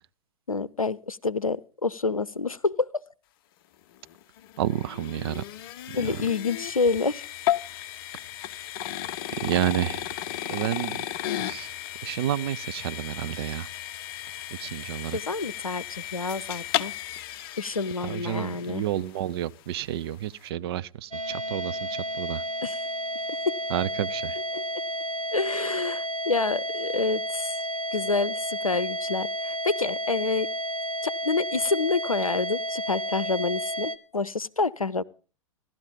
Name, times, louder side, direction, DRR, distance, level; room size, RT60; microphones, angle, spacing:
voice 1, 0.5-2.9 5.9-7.2 15.1-16.9 17.6-18.8 22.6-22.8 23.5-23.6 24.5-24.7 25.3-27.6 27.9-30.5 31.0-35.0, left 4 dB, 85° left, 0.6 m, -28 dB
sound 1, 4.0-19.2, left 12 dB, 45° left, 0.6 m, -34 dB
voice 2, 4.6-5.4 9.4-10.1 10.5-11.0 11.4-11.7 12.0-13.7 14.6-15.2 18.0-22.4 23.7-24.4, right 12 dB, 45° right, 0.6 m, -30 dB
sound 2, 21.1-34.0, equal, 90° right, 1.0 m, -31 dB
16.5 x 12.0 x 5.3 m
figure-of-eight pair, 100°, 17 cm